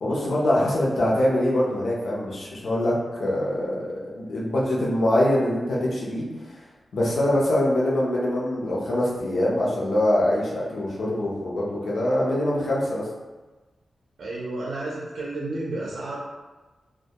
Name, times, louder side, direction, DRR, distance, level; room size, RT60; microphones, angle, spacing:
voice 1, 0.0-6.2 6.9-13.1, left 1 dB, 85° left, -5 dB, 0.6 m, -24 dB
voice 2, 14.2-16.2, right 2 dB, 85° right, -5 dB, 0.5 m, -31 dB
2.2 x 2.1 x 2.8 m, 1.2 s
wide cardioid pair, 135°, 0 cm